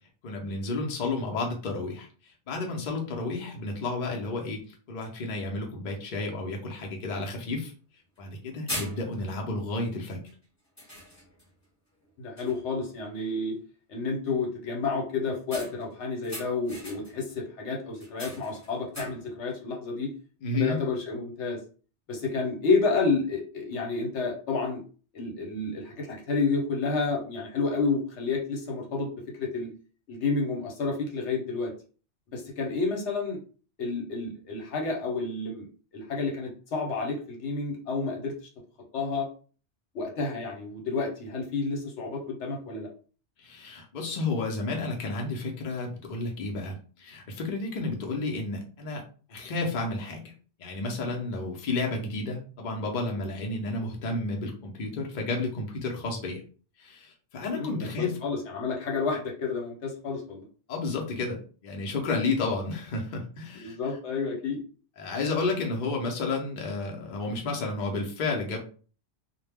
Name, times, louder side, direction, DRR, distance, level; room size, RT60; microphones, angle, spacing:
voice 1, 0.2-7.7 8.2-10.2 20.4-20.8 43.4-49.0 49.3-50.3 50.6-56.4 56.8-58.2 60.7-63.8 65.0-68.6, left 3 dB, 50° left, 0 dB, 0.7 m, -31 dB
sound 1, 8.2-8.3 8.7-9.4 10.1-10.3 10.8-11.5 12.0-12.1 12.4-12.8 15.5-17.3 17.9-19.4, equal, 15° left, 0.9 m, -41 dB
voice 2, 12.2-13.5 13.9-20.1 20.5-21.6 22.1-24.8 25.1-29.7 30.1-31.7 32.3-33.4 33.8-35.7 35.9-38.3 38.9-39.3 39.9-42.9 57.5-60.5 63.6-64.6, left 4 dB, 80° left, 1 dB, 1.1 m, -30 dB
2.2 x 2.1 x 3.3 m, 0.39 s
omnidirectional pair, 1.2 m